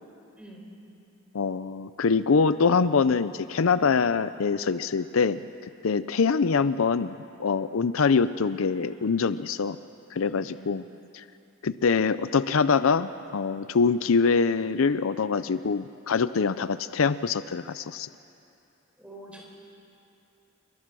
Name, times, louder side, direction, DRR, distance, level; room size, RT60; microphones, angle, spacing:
voice 1, 0.4-0.7 10.4-10.7 19.0-19.5, right 1 dB, 5° right, -1 dB, 4.3 m, -46 dB
voice 2, 1.3-9.8 10.1-10.8 11.1-11.2 11.6-18.1, left 5 dB, 70° left, 14 dB, 0.5 m, -24 dB
28.0 x 23.0 x 6.2 m, 2.7 s
head